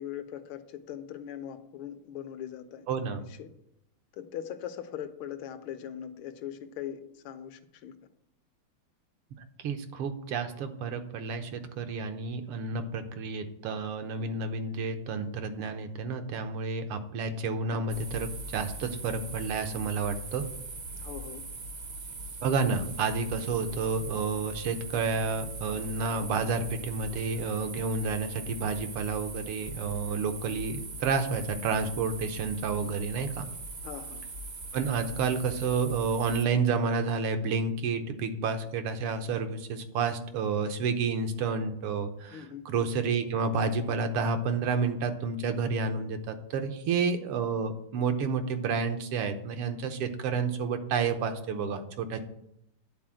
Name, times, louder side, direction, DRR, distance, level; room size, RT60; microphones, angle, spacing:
voice 1, 0.0-2.9 3.4-3.5 4.1-8.0 20.9-21.4 33.8-34.2 42.3-42.6, left 10 dB, 75° left, 9 dB, 1.5 m, -40 dB
voice 2, 2.9-3.2 9.6-20.4 22.4-33.5 34.7-52.2, right 4 dB, 85° right, 7 dB, 1.8 m, -30 dB
sound 1, 17.9-36.5, right 3 dB, 55° right, 0.6 m, -41 dB
9.7 x 4.2 x 7.5 m, 0.78 s
omnidirectional pair, 2.4 m